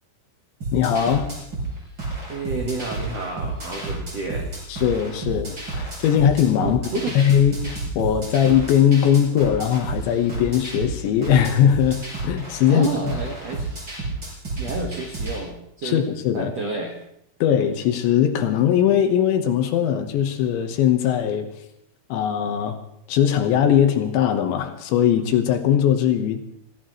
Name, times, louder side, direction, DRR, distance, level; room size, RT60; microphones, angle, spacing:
sound 1, 0.6-15.4, right 2 dB, 20° right, 6.5 m, -31 dB
voice 1, 0.7-1.3 4.7-6.8 7.2-12.9 15.8-16.5 17.4-21.5 22.1-22.8 23.1-26.4, left 9 dB, 75° left, 7 dB, 3.2 m, -20 dB
voice 2, 2.3-4.8 5.2-5.3 6.6-7.1 12.7-13.7 14.6-16.0 16.3-17.0, right 3 dB, 80° right, 1 dB, 1.5 m, -30 dB
26.0 x 16.5 x 3.1 m, 0.77 s
omnidirectional pair, 5.8 m